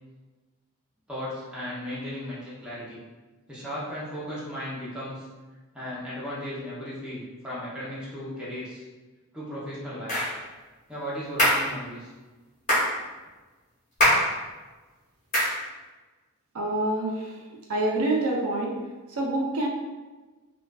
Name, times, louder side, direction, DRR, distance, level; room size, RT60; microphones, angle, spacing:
voice 1, 1.1-3.0 3.5-5.3 5.7-8.8 9.3-10.1 10.9-12.1, equal, 5° right, -9 dB, 0.6 m, -36 dB
sound 1, 10.1-10.4 11.4-11.7 12.7-12.9 14.0-14.3 15.3-15.6, equal, 35° left, 1.1 m, -22 dB
voice 2, 16.5-17.4 17.7-18.7 19.1-19.7, right 2 dB, 75° right, -2 dB, 0.5 m, -26 dB
2.5 x 2.3 x 2.2 m, 1.2 s
head